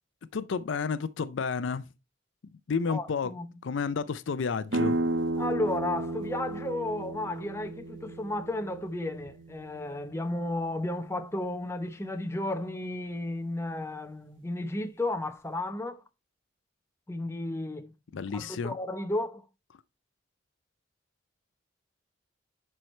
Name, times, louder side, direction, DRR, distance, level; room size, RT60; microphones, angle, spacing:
voice 1, 0.3-1.9 2.4-3.3 3.6-5.0 18.1-18.8, left 5 dB, 70° left, 0.5 m, -31 dB
voice 2, 2.9-3.5 5.4-16.0 17.1-17.9 18.3-19.4, left 1 dB, 15° left, 0.7 m, -33 dB
sound 1, 4.7-10.3, right 2 dB, 75° right, 0.9 m, -33 dB
10.5 x 4.5 x 3.1 m
head